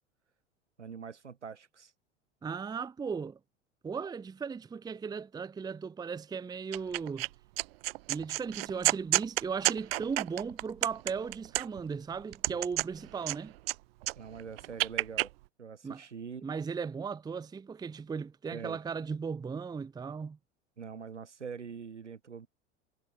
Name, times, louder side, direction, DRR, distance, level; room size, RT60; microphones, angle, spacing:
voice 1, 0.8-1.9 14.2-15.3 15.6-16.5 18.5-18.8 20.8-22.5, right 6 dB, 80° right, 3.3 m, -43 dB
voice 2, 2.4-3.4 3.8-7.3 8.1-13.5 15.8-16.0 16.4-20.4, right 5 dB, 10° right, 0.7 m, -37 dB
sound 1, 6.7-7.3 7.6-11.9 12.3-13.8 14.0-15.3, right 20 dB, 55° right, 1.1 m, -30 dB
figure-of-eight pair, 80°, 35 cm